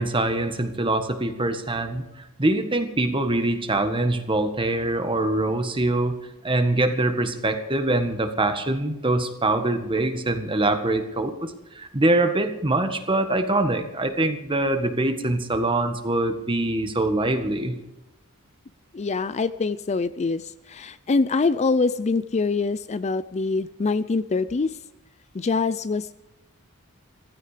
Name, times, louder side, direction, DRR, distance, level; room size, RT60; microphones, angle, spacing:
voice 1, 0.0-2.0 2.4-6.2 6.4-17.7, right 2 dB, 25° right, 7 dB, 1.7 m, -24 dB
voice 2, 18.9-24.8 25.3-26.2, left 4 dB, 30° left, 14 dB, 0.4 m, -24 dB
16.0 x 15.0 x 5.1 m, 0.97 s
head